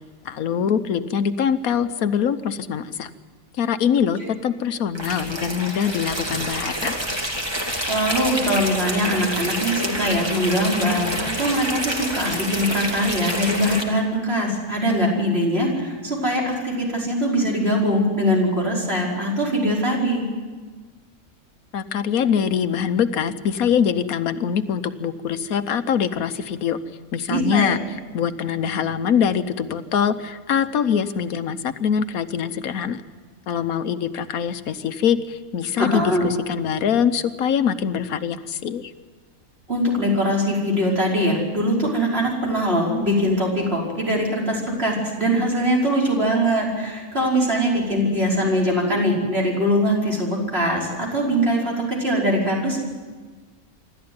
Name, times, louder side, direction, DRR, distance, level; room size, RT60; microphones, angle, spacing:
voice 1, 0.2-3.1 3.6-7.0 21.7-26.8 27.1-27.8 28.1-33.0 33.5-38.9, left 7 dB, 80° left, 11 dB, 1.4 m, -23 dB
sound 1, 4.9-13.8, equal, 20° right, 2.3 m, -27 dB
voice 2, 7.9-20.2 27.3-27.8 35.8-36.3 39.7-52.8, equal, 45° right, -3 dB, 5.6 m, -22 dB
26.0 x 13.0 x 9.6 m, 1.4 s
omnidirectional pair, 1.5 m